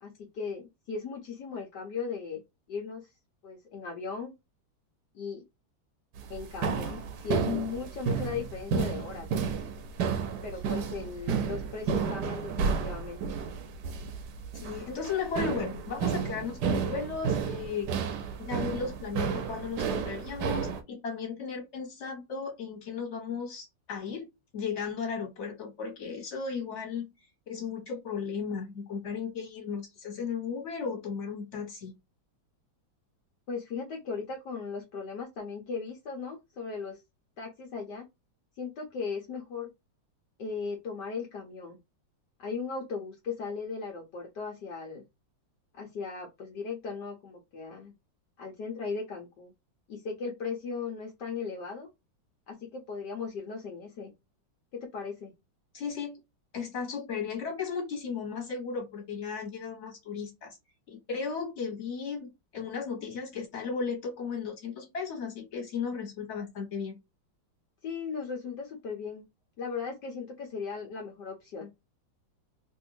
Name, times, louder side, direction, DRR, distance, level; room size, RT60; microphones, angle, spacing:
voice 1, 0.0-2.4 2.7-3.1 3.4-4.3 5.1-5.4 6.3-9.3 10.4-13.4 33.5-37.0 37.4-38.1 38.6-39.7 40.4-41.8 42.4-45.0 45.7-47.9 48.4-49.5 49.9-51.9 52.5-54.1 54.7-55.3 67.8-69.2 69.6-71.7, left 5 dB, 65° left, 1.4 m, -37 dB
sound 1, 6.2-20.8, right 6 dB, 70° right, 1.2 m, -32 dB
voice 2, 14.5-17.9 18.4-24.3 24.5-27.1 27.5-32.0 55.7-56.2 56.5-60.6 60.9-67.0, left 5 dB, 40° left, 1.6 m, -35 dB
3.5 x 2.6 x 2.7 m
omnidirectional pair, 2.1 m